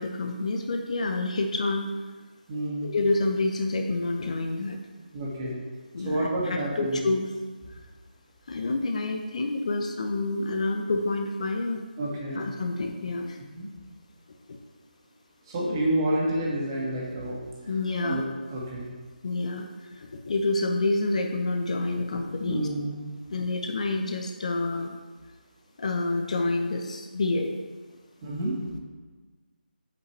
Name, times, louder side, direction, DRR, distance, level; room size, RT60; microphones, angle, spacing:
voice 1, 0.0-1.9 2.8-4.8 5.9-7.3 8.5-11.8 12.4-13.4 14.5-14.6 17.7-18.2 19.2-22.7 23.3-25.0 25.8-27.5, left 2 dB, 45° left, 4 dB, 0.7 m, -28 dB
voice 2, 2.5-2.9 5.1-5.6 6.0-7.0 12.0-12.4 13.5-13.7 15.5-17.4 18.0-18.2 18.5-18.9 22.4-23.0 28.2-28.6, right 1 dB, 25° right, -4 dB, 2.0 m, -29 dB
8.1 x 8.0 x 3.2 m, 1.4 s
figure-of-eight pair, 155°, 5 cm